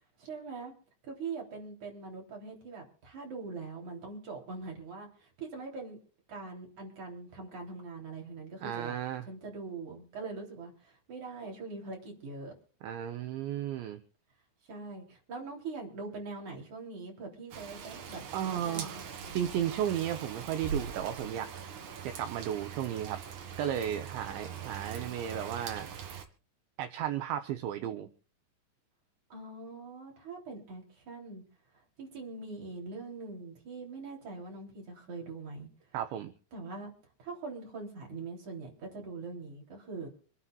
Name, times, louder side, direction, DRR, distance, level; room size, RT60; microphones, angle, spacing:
voice 1, 0.2-0.7 1.0-6.0 6.3-8.9 9.3-12.5 14.7-19.0 29.3-31.4 32.0-35.7 36.5-36.9 37.2-40.1, right 3 dB, 40° right, 0 dB, 4.2 m, -42 dB
voice 2, 8.6-9.3 12.8-14.0 18.3-19.0 19.3-21.5 22.0-23.2 23.6-25.9 26.8-28.1 35.9-36.3, right 10 dB, 75° right, 7 dB, 2.8 m, -34 dB
Rain, 17.5-26.3, right 7 dB, 60° right, 2.2 m, -42 dB
27.0 x 9.9 x 2.4 m, 0.43 s
omnidirectional pair, 6.0 m